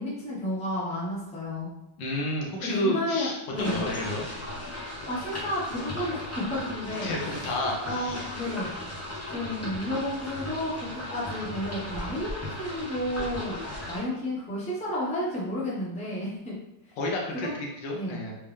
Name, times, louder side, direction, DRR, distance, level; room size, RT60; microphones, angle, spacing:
voice 1, 0.0-1.7 2.6-3.8 5.1-7.1 7.8-8.7 9.3-13.6 13.9-16.6 17.3-17.5 17.9-18.2, left 1 dB, 5° left, -6 dB, 0.7 m, -31 dB
voice 2, 2.0-4.3 7.0-8.3 17.0-18.4, left 1 dB, 80° left, -2 dB, 1.6 m, -31 dB
sound 1, 3.5-14.0, left 1 dB, 25° left, 0.3 m, -36 dB
4.1 x 3.5 x 3.4 m, 0.88 s
omnidirectional pair, 2.0 m